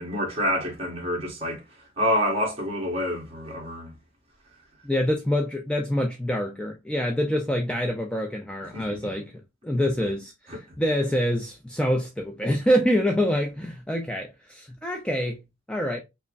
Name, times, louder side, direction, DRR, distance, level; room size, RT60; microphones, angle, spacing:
voice 1, 0.0-1.6 2.0-3.9 8.7-9.1 10.5-10.6, equal, 30° right, 1.4 m, -27 dB
voice 2, 4.8-9.3 9.6-15.4 15.7-16.0, equal, 5° left, 0.3 m, -26 dB
5.3 x 2.0 x 2.5 m
head